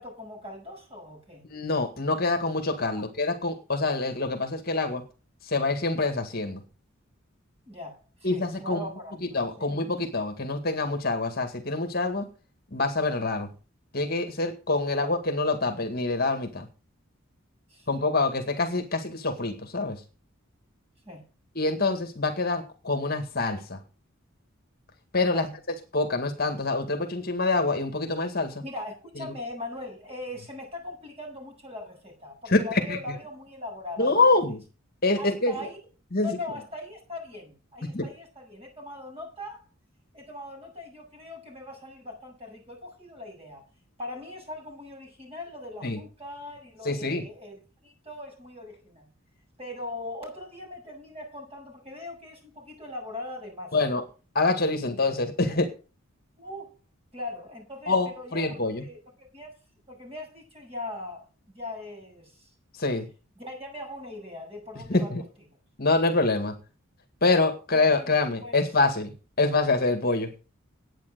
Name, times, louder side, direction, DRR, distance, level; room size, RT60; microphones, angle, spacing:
voice 1, 0.0-1.4 2.9-3.0 7.7-9.7 15.0-15.1 17.7-17.9 21.1-21.2 25.3-25.6 28.6-34.3 35.2-35.8 36.2-39.6 40.1-43.6 44.0-49.1 49.6-53.8 56.4-56.7 57.1-59.5 59.9-61.3 61.5-62.5 63.4-65.2 67.7-68.1 68.4-68.5, left 2 dB, 30° right, 0 dB, 7.7 m, -40 dB
voice 2, 1.5-5.0 5.4-6.6 8.2-8.8 9.3-12.3 12.7-13.5 13.9-16.7 17.9-20.0 21.6-23.8 25.1-25.5 25.9-28.6 29.2-29.3 32.5-33.0 34.0-34.6 35.0-35.6 36.1-36.4 37.8-38.1 45.8-46.0 46.8-47.3 53.7-54.0 54.4-55.7 57.9-58.8 62.7-63.1 64.9-65.2 65.8-66.6 67.2-69.1 69.4-70.3, left 3 dB, 45° left, 6 dB, 1.9 m, -26 dB
10.5 x 9.1 x 6.6 m, 0.34 s
head